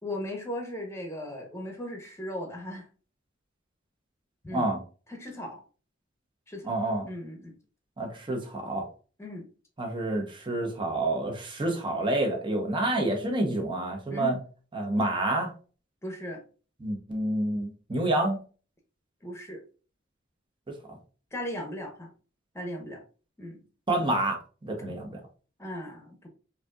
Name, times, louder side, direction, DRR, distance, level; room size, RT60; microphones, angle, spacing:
voice 1, 0.0-2.9 4.4-4.7 5.1-5.6 6.5-6.7 7.1-7.5 9.2-9.4 14.1-14.4 16.0-16.4 19.2-19.6 21.3-22.1 22.5-23.0 23.4-23.6 25.6-26.3, left 1 dB, 15° left, 2 dB, 1.0 m, -37 dB
voice 2, 6.6-7.1 8.0-8.9 9.8-14.4 14.7-15.5 16.8-18.4 20.7-21.0 23.9-24.4 24.6-25.1, right 1 dB, 25° right, 2 dB, 0.9 m, -28 dB
5.0 x 2.8 x 2.4 m, 0.37 s
head